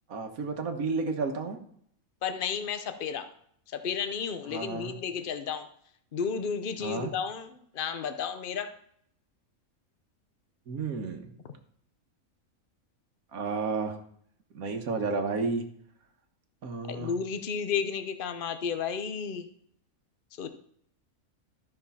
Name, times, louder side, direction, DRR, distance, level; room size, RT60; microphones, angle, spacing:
voice 1, 0.1-1.6 4.5-4.9 6.8-7.1 10.7-11.3 13.3-14.0 14.5-15.6 16.6-17.1, right 4 dB, 85° right, 5 dB, 1.7 m, -31 dB
voice 2, 2.2-3.3 3.7-5.7 6.1-8.7 16.9-19.5 20.4-20.5, left 6 dB, 45° left, 10 dB, 0.9 m, -32 dB
13.0 x 5.3 x 5.6 m, 0.65 s
omnidirectional pair, 1.5 m